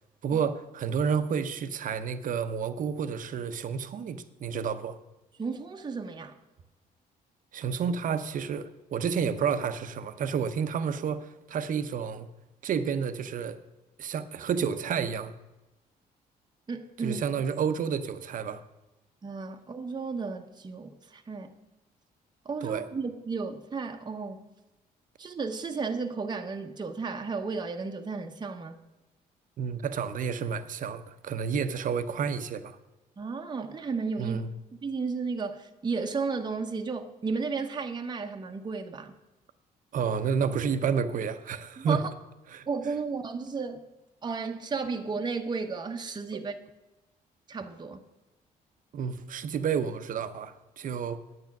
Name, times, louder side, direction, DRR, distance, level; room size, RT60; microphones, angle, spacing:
voice 1, 0.2-5.0 7.5-12.3 12.6-13.6 14.0-15.3 17.0-18.6 22.6-22.9 29.6-32.8 34.2-34.5 39.9-42.0 42.5-42.7 46.3-46.4 48.9-51.2, right 6 dB, 55° right, 0.8 m, -30 dB
voice 2, 5.4-6.3 16.7-17.2 19.2-21.6 22.4-24.4 25.2-28.8 33.2-34.4 34.8-39.2 41.8-42.1 42.7-43.8 44.2-46.5 47.5-48.0, right 4 dB, 25° right, 0.9 m, -33 dB
9.3 x 8.6 x 5.9 m
cardioid pair, 95°, 16 cm